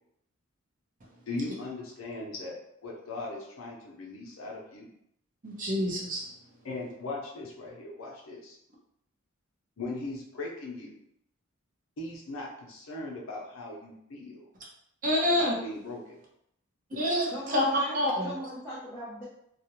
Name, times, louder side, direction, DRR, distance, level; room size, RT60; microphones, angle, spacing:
voice 1, 1.3-2.5 2.8-4.9 6.6-8.6 9.8-10.9 12.0-14.5 15.4-16.0, left 2 dB, 75° left, -2 dB, 0.6 m, -38 dB
voice 2, 5.4-6.3 15.0-15.5 17.0-17.6 17.9-18.3, left 1 dB, 40° right, -3 dB, 0.7 m, -27 dB
voice 3, 17.2-19.2, equal, 10° left, -12 dB, 0.7 m, -38 dB
2.4 x 2.1 x 2.9 m, 0.75 s
head